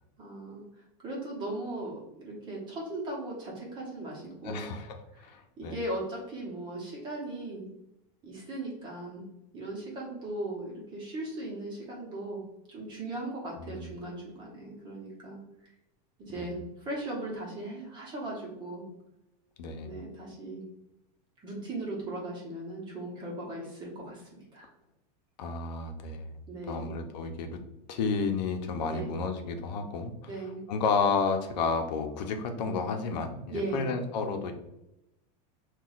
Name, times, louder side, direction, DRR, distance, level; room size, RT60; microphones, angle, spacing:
voice 1, 0.2-4.7 5.1-7.7 8.2-9.3 9.5-15.4 16.2-18.8 19.8-20.7 21.4-24.7 26.5-27.0 28.9-29.1 30.3-30.6 33.5-33.9, right 2 dB, 20° right, -3 dB, 0.9 m, -38 dB
voice 2, 4.4-5.8 13.6-13.9 16.4-16.5 19.6-19.9 25.4-26.4 26.7-27.6 27.9-30.1 30.7-34.5, left 5 dB, 85° left, 5 dB, 0.7 m, -31 dB
5.9 x 2.4 x 2.4 m, 0.88 s
supercardioid pair, 170°, 21 cm